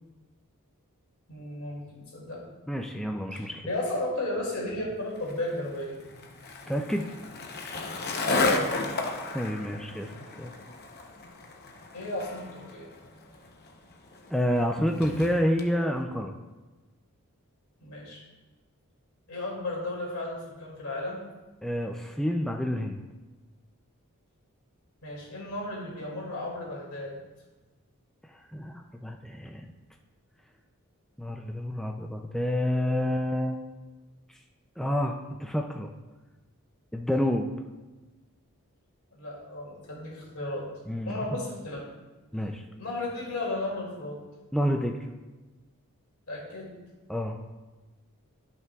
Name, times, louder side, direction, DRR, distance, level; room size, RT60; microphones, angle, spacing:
voice 1, 1.3-2.4 3.3-6.0 8.2-8.9 11.9-12.9 17.8-18.2 19.3-21.2 25.0-27.2 39.1-40.7 41.1-41.8 42.8-44.2 46.3-46.7, left 1 dB, 75° left, -3 dB, 2.5 m, -34 dB
voice 2, 2.7-3.6 6.7-7.1 9.3-10.5 14.3-16.3 21.6-23.0 28.3-29.7 31.2-33.7 34.3-34.4 34.8-35.9 36.9-37.5 40.9-41.4 42.3-42.6 44.5-45.0 47.1-47.4, equal, ahead, 2 dB, 0.4 m, -29 dB
Skateboard, 5.2-15.7, left 3 dB, 45° left, 0.8 m, -34 dB
13.5 x 5.8 x 2.4 m, 1.2 s
head